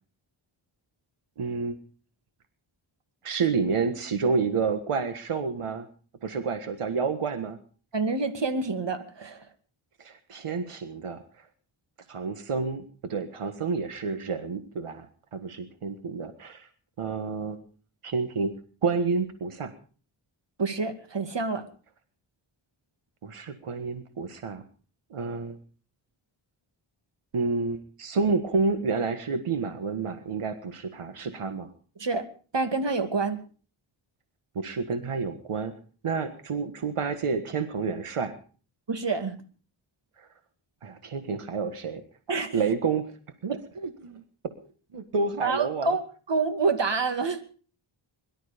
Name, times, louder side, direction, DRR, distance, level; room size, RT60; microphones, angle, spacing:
voice 1, 1.4-1.8 3.2-5.9 6.2-7.6 10.0-11.4 12.1-15.1 15.3-16.7 17.0-17.6 18.0-18.5 18.8-19.7 23.2-24.6 25.1-25.6 27.3-31.7 34.5-35.7 36.0-38.3 40.2-40.3 40.8-42.0 42.5-43.1 43.4-44.2 44.9-46.0, right 4 dB, 90° right, 9 dB, 1.6 m, -29 dB
voice 2, 7.9-9.5 20.6-21.7 32.0-32.3 32.5-33.4 38.9-39.3 42.3-42.6 45.4-46.0 46.3-47.4, right 4 dB, 55° right, 8 dB, 2.4 m, -27 dB
22.0 x 12.5 x 5.1 m, 0.40 s
wide cardioid pair, 70°, 50 cm